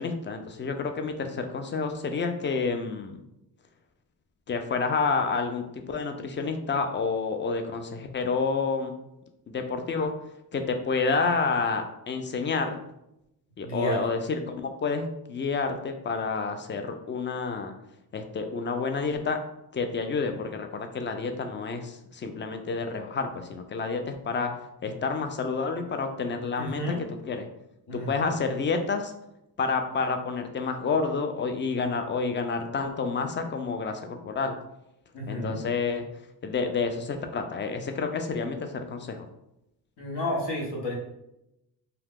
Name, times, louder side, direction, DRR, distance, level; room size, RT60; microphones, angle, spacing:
voice 1, 0.0-3.2 4.5-8.9 9.5-10.1 10.5-12.8 13.6-17.7 18.1-19.4 19.7-24.5 24.8-26.8 27.2-27.5 27.9-29.1 29.6-34.6 35.3-36.1 36.4-39.3, left 4 dB, 30° left, 6 dB, 0.4 m, -29 dB
voice 2, 13.6-14.0 26.6-27.0 27.9-28.3 35.1-35.6 40.0-41.0, left 1 dB, 70° left, -1 dB, 1.1 m, -31 dB
2.8 x 2.3 x 3.5 m, 0.85 s
cardioid pair, 95°, 42 cm